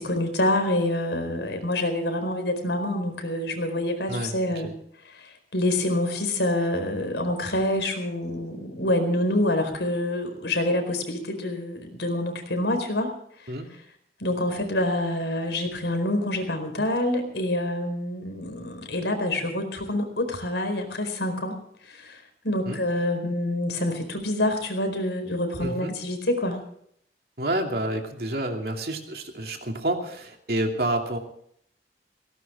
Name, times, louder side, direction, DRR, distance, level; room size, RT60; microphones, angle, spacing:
voice 1, 0.0-4.7 5.0-13.1 13.4-13.5 14.2-21.6 21.9-26.6, left 1 dB, 85° left, 6 dB, 4.5 m, -27 dB
voice 2, 25.6-25.9 27.4-31.2, right 1 dB, 60° right, 3 dB, 2.7 m, -29 dB
18.0 x 17.5 x 3.6 m, 0.66 s
head